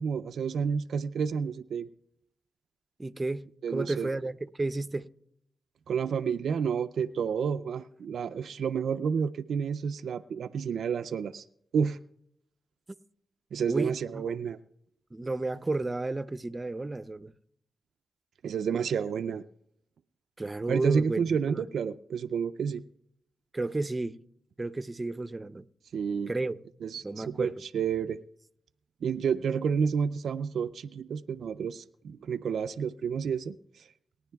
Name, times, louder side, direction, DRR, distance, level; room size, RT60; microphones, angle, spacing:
voice 1, 0.0-1.9 3.6-4.1 5.9-11.4 11.7-12.0 13.5-14.6 18.4-19.4 20.7-22.8 25.9-26.3 26.8-28.2 29.0-33.9, right 6 dB, 80° right, 0.3 m, -30 dB
voice 2, 3.0-5.1 13.7-14.2 15.1-17.3 20.4-21.7 23.5-24.2 24.6-25.7 26.3-26.6 27.0-27.5, right 2 dB, 30° right, 0.6 m, -32 dB
26.5 x 9.7 x 2.3 m
supercardioid pair, 45°, 0 cm